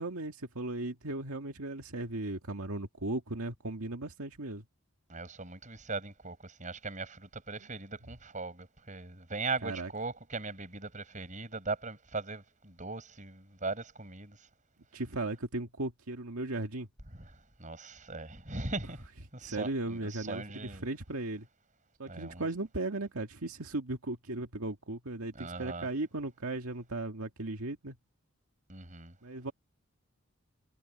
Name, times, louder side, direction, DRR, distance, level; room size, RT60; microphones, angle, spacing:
voice 1, 0.0-4.6 9.6-9.9 14.9-16.9 19.4-21.5 22.0-28.0 29.2-29.5, right 2 dB, 85° right, 2.0 m, -37 dB
voice 2, 5.1-14.4 17.1-17.3 17.6-19.1 19.3-20.8 22.1-22.5 25.3-25.9 28.7-29.1, right 3 dB, 35° right, 6.6 m, -39 dB
head